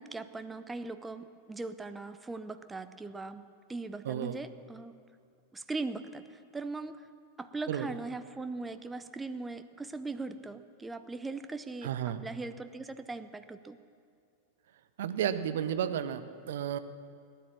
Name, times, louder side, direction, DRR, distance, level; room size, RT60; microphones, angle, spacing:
voice 1, 0.0-4.9 5.5-7.0 7.4-13.8, right 3 dB, 10° right, 10 dB, 0.6 m, -40 dB
voice 2, 4.0-4.4 7.7-7.9 11.8-12.2 15.0-16.8, right 9 dB, 60° right, 12 dB, 0.7 m, -32 dB
18.0 x 10.0 x 7.3 m, 2.3 s
figure-of-eight pair, 90°, 0 cm